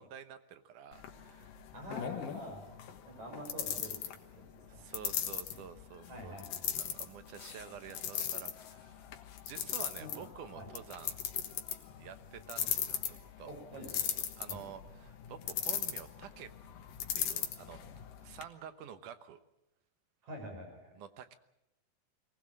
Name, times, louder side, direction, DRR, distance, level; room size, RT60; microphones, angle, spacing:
voice 1, 0.0-1.5 4.7-6.3 6.6-9.0 9.4-11.2 12.0-13.5 14.4-16.5 17.1-17.8 18.2-19.4 21.0-21.4, right 8 dB, 70° right, 10 dB, 2.4 m, -49 dB
sound 1, 0.9-18.4, left 9 dB, 75° left, 3.1 m, -39 dB
voice 2, 1.7-2.6 3.1-4.2 4.7-4.8 6.1-7.0 10.0-10.3 10.5-10.7 12.6-12.7 13.5-14.1 14.5-14.6 20.2-21.0, equal, 55° right, 3 dB, 7.0 m, -46 dB
23.0 x 19.5 x 7.6 m, 0.87 s
omnidirectional pair, 3.9 m